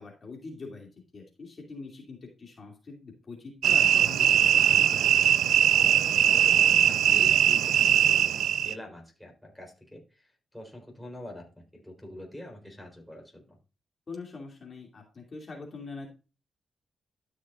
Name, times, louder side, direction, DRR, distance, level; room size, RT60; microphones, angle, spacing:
voice 1, 0.0-5.1 14.1-16.1, left 4 dB, 45° left, 0 dB, 2.5 m, -43 dB
sound 1, 3.6-8.7, right 10 dB, 85° right, 0.4 m, -21 dB
voice 2, 6.1-10.3 10.5-11.5 11.7-13.5, left 1 dB, 5° left, 0 dB, 3.7 m, -45 dB
12.5 x 6.2 x 2.4 m, 0.30 s
cardioid pair, 80°, 0 cm